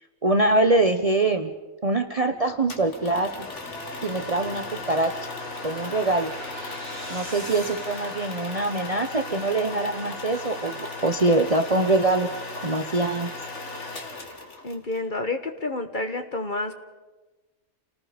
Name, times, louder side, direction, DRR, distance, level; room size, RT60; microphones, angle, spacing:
voice 1, 0.2-1.5 1.8-3.3 4.0-5.1 5.6-6.3 7.1-12.3 12.6-13.3, right 2 dB, 30° right, 7 dB, 0.8 m, -23 dB
sound 1, 2.3-9.6, right 1 dB, 10° right, 4.2 m, -44 dB
sound 2, 2.7-15.0, left 2 dB, 55° left, 2.3 m, -36 dB
voice 2, 14.6-16.7, left 2 dB, 35° left, 7 dB, 1.3 m, -29 dB
29.0 x 19.0 x 5.1 m, 1.2 s
omnidirectional pair, 1.5 m